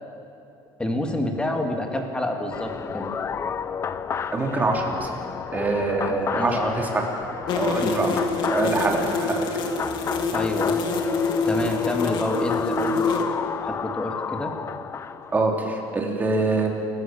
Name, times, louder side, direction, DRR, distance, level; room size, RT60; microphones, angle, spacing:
voice 1, 0.8-3.1 6.1-6.7 7.8-8.2 10.3-10.8 11.5-13.3 13.6-14.5, left 1 dB, 10° left, 3 dB, 2.5 m, -28 dB
sound 1, 2.5-15.4, left 7 dB, 30° left, 0.7 m, -31 dB
voice 2, 4.3-5.1 5.5-7.0 7.5-8.1 8.5-9.4 15.3-16.7, right 3 dB, 20° right, 0 dB, 3.2 m, -24 dB
sound 2, 7.5-13.2, left 4 dB, 55° left, 2.4 m, -26 dB
29.0 x 15.0 x 7.2 m, 2.7 s
cardioid pair, 135°, 9 cm